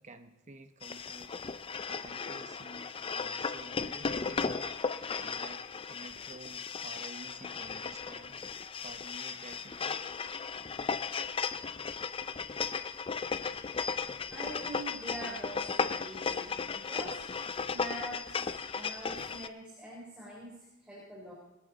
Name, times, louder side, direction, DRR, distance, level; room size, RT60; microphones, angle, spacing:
voice 1, 0.0-1.3 1.6-4.7 5.2-8.4 8.8-10.0, right 2 dB, 35° right, 7 dB, 0.9 m, -51 dB
sound 1, 0.8-19.5, left 5 dB, 25° left, 0.5 m, -36 dB
voice 2, 14.3-17.3 17.7-21.3, right 1 dB, 5° right, -5 dB, 3.5 m, -44 dB
22.0 x 13.5 x 4.0 m, 0.94 s
head